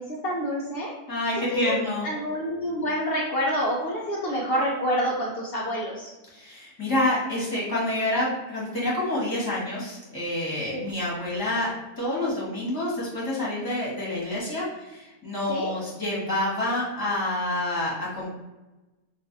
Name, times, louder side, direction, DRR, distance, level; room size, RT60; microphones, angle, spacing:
voice 1, 0.0-0.9 1.5-1.8 2.0-6.1 10.7-10.8 15.5-15.7, equal, 75° left, -3 dB, 0.5 m, -27 dB
voice 2, 1.1-2.1 6.3-11.7 12.0-18.3, left 1 dB, 15° left, -7 dB, 1.0 m, -28 dB
2.5 x 2.5 x 3.7 m, 1.1 s
omnidirectional pair, 1.5 m